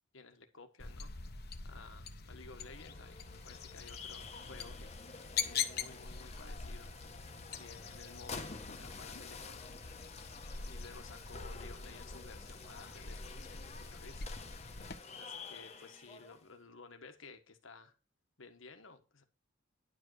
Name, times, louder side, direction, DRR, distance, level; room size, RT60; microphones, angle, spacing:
voice 1, 0.1-1.1 1.6-4.9 5.4-6.9 7.6-9.7 10.6-14.3 15.1-17.9 18.4-19.2, left 4 dB, 70° left, 1.4 m, -55 dB
sound 1, 0.8-15.0, left 6 dB, 50° left, 1.1 m, -44 dB
sound 2, 2.4-16.5, left 4 dB, 30° left, 1.2 m, -50 dB
10.5 x 5.2 x 6.3 m
head